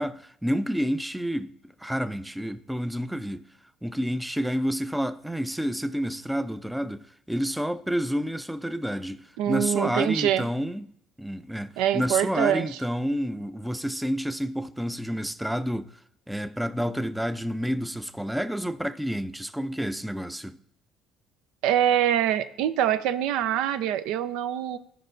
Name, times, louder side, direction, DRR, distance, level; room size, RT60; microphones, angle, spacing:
voice 1, 0.0-3.5 3.8-10.9 11.2-16.0 16.3-20.6, equal, 5° right, 0.4 m, -29 dB
voice 2, 9.4-10.5 11.8-12.7 21.6-24.8, right 10 dB, 85° right, 0.5 m, -24 dB
15.5 x 5.4 x 2.5 m
cardioid pair, 130°, 0 cm